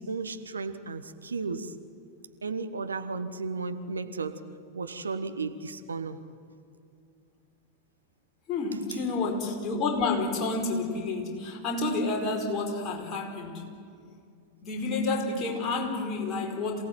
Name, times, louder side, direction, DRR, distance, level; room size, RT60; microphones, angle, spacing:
voice 1, 0.0-1.7 2.4-4.4 4.7-6.2, right 4 dB, 75° right, 10 dB, 1.2 m, -34 dB
voice 2, 8.5-13.6 14.6-16.8, left 3 dB, 30° left, 1 dB, 4.7 m, -29 dB
27.0 x 18.0 x 9.2 m, 2.4 s
figure-of-eight pair, 90°, 0 cm